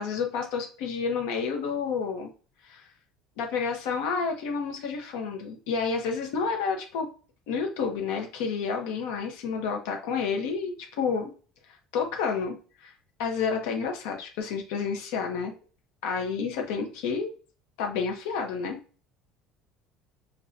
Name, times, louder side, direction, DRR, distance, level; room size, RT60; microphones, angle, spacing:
voice 1, 0.0-2.3 2.6-2.9 3.4-7.1 7.5-11.3 11.7-12.9 13.2-15.5 16.0-17.3 17.8-18.8, left 5 dB, 85° left, 2 dB, 0.8 m, -30 dB
5.4 x 2.2 x 2.5 m, 0.38 s
cardioid pair, 160°, 0 cm